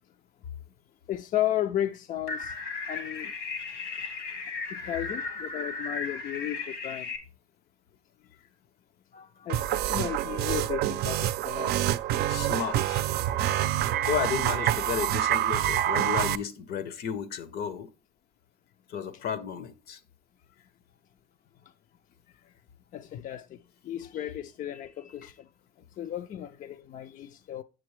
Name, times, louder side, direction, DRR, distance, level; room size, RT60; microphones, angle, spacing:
voice 1, 1.1-2.5 2.9-3.3 3.8-4.4 4.7-7.1 9.1-11.8 22.9-23.6 23.8-25.5 26.0-27.6, left 11 dB, 50° left, 0.4 m, -34 dB
sound 1, 2.3-7.2, left 4 dB, 85° left, 1.6 m, -35 dB
sound 2, 9.5-16.4, right 12 dB, 70° right, 0.4 m, -27 dB
voice 2, 12.3-13.1 14.0-17.9 18.9-20.0, left 8 dB, 70° left, 0.8 m, -33 dB
7.5 x 6.5 x 3.1 m
cardioid pair, 110°, 17 cm